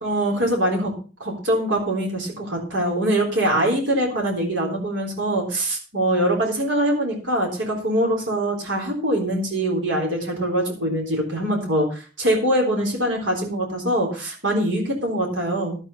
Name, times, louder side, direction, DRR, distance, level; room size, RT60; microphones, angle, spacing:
voice 1, 0.0-0.9 1.2-15.8, right 1 dB, 85° right, 1 dB, 3.8 m, -23 dB
12.0 x 8.6 x 5.5 m, 0.35 s
head